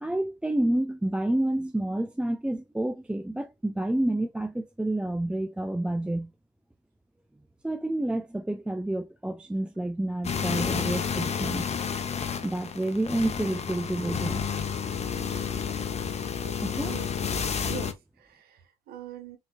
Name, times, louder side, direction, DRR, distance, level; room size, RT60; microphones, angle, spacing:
voice 1, 0.0-6.3 7.6-11.7 12.4-14.4 16.6-16.9, right 1 dB, 5° right, 0.5 m, -29 dB
sound 1, 10.2-17.9, left 6 dB, 35° left, 1.0 m, -30 dB
voice 2, 16.4-17.1 17.7-19.4, right 7 dB, 60° right, 1.5 m, -43 dB
4.3 x 4.0 x 2.4 m
hypercardioid pair, 65°, 18 cm